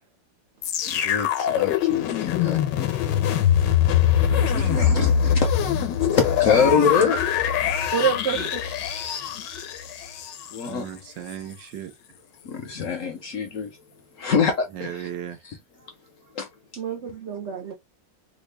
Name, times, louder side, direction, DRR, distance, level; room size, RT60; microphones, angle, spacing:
sound 1, 0.6-10.7 11.3-11.4, left 9 dB, 80° left, 1.3 m, -23 dB
voice 1, 0.8-3.7 4.4-5.6 6.1-7.2 10.5-10.9 12.4-13.7 14.1-15.1 15.4-15.6 16.3-16.5, left 6 dB, 65° left, 0.8 m, -25 dB
voice 2, 4.3-5.1 6.1-6.2 6.5-6.9 8.3-8.5 10.7-11.9 14.7-15.4, right 10 dB, 80° right, 1.5 m, -35 dB
voice 3, 7.9-8.7 16.8-17.7, right 7 dB, 65° right, 0.7 m, -27 dB
3.6 x 2.3 x 3.2 m
omnidirectional pair, 1.9 m